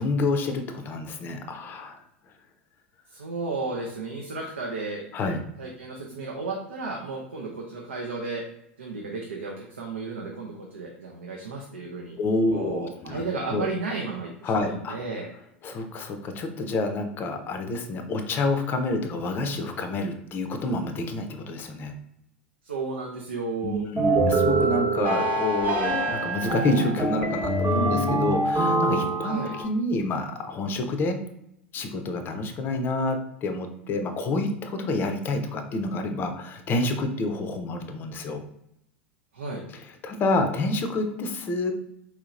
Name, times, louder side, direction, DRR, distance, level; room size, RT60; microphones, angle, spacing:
voice 1, 0.0-2.0 5.1-5.4 12.2-13.2 13.5-13.7 14.4-15.0 15.6-21.9 23.6-31.2 31.7-38.4 40.0-41.7, left 2 dB, 30° left, 6 dB, 0.5 m, -28 dB
voice 2, 3.1-5.1 5.6-8.4 8.8-12.2 12.5-15.3 22.6-23.9 29.2-29.5 39.3-39.6, right 3 dB, 75° right, -1 dB, 0.5 m, -33 dB
sound 1, 24.0-29.7, right 2 dB, 30° right, 0.9 m, -24 dB
4.3 x 2.8 x 2.5 m, 0.79 s
figure-of-eight pair, 80°, 6 cm